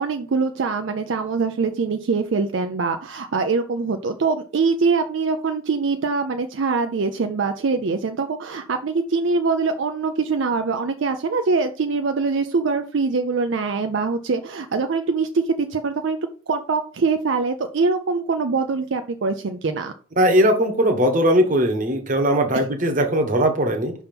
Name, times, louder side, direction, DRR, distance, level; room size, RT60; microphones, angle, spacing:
voice 1, 0.0-16.2 16.5-19.9, right 4 dB, 65° right, 6 dB, 0.5 m, -23 dB
voice 2, 20.2-23.9, equal, 40° right, 4 dB, 1.1 m, -19 dB
5.6 x 3.5 x 5.8 m, 0.41 s
head